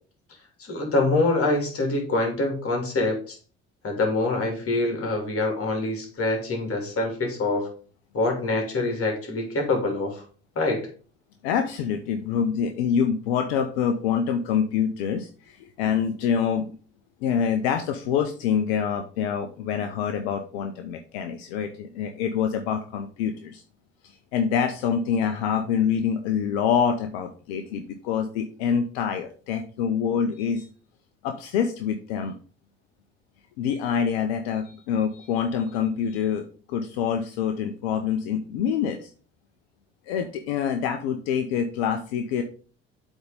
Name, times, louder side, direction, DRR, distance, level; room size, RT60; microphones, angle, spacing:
voice 1, 0.6-3.4 3.8-7.7 8.1-10.2 10.5-10.9, left 2 dB, 45° left, 2 dB, 3.1 m, -25 dB
voice 2, 11.4-16.7 17.2-23.6 24.0-30.7 31.2-32.4 33.6-39.1 40.1-42.4, left 7 dB, 75° left, 7 dB, 0.7 m, -26 dB
8.0 x 3.6 x 5.1 m, 0.40 s
hypercardioid pair, 55°, 32 cm